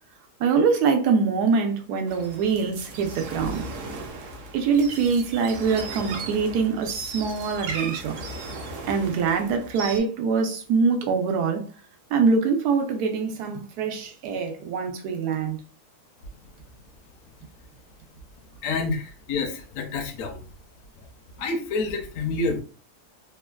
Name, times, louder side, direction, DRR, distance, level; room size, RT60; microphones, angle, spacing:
voice 1, 0.4-3.6 4.5-8.2 8.9-11.7 12.1-15.6, right 5 dB, 90° right, 1.1 m, -24 dB
sound 1, 2.1-10.0, right 3 dB, 65° right, 0.8 m, -36 dB
voice 2, 18.6-20.4 21.4-22.6, left 3 dB, 70° left, 0.9 m, -28 dB
3.2 x 2.1 x 2.2 m
omnidirectional pair, 1.6 m